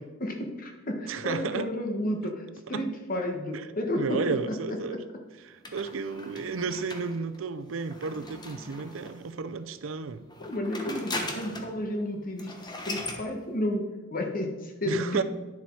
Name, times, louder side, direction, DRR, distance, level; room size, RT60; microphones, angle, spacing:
voice 1, 0.2-5.0 10.4-15.2, left 1 dB, 45° left, 1.4 m, -32 dB
voice 2, 1.1-1.7 2.7-2.8 3.5-3.7 4.0-5.0 5.4-10.3 14.8-15.2, right 4 dB, 80° right, 0.5 m, -32 dB
sound 1, 5.6-9.3 10.3-11.8 12.1-12.2 12.4-13.2, left 2 dB, 20° left, 1.2 m, -39 dB
10.5 x 7.1 x 4.7 m
head